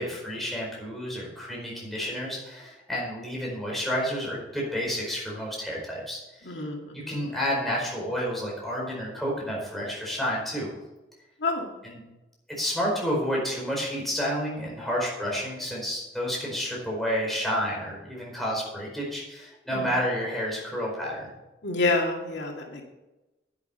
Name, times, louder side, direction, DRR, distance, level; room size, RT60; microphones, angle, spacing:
voice 1, 0.0-6.5 6.9-10.7 11.8-12.0 12.6-21.3, equal, ahead, -4 dB, 4.6 m, -30 dB
voice 2, 6.4-7.2 11.4-11.7 19.7-19.9 21.6-22.8, left 2 dB, 90° left, 1 dB, 2.2 m, -28 dB
11.0 x 9.7 x 4.4 m, 1.0 s
head